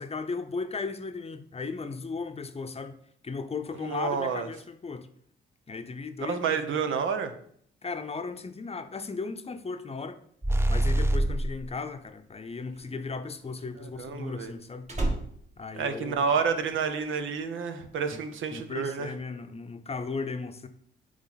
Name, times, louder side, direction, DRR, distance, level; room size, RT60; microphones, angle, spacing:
voice 1, 0.0-3.0 3.2-5.1 5.7-6.8 7.8-10.2 10.7-14.9 15.6-16.4 18.1-18.2 18.5-20.7, left 4 dB, 30° left, 0.7 m, -36 dB
voice 2, 3.9-4.5 6.2-7.3 14.0-14.5 15.7-19.1, right 6 dB, 75° right, 0.8 m, -29 dB
sound 1, 10.4-11.6, right 1 dB, 10° right, 0.5 m, -25 dB
Slam, 12.0-16.7 17.0-17.4, right 2 dB, 35° right, 1.7 m, -35 dB
8.2 x 3.1 x 4.0 m
supercardioid pair, 65°, 21 cm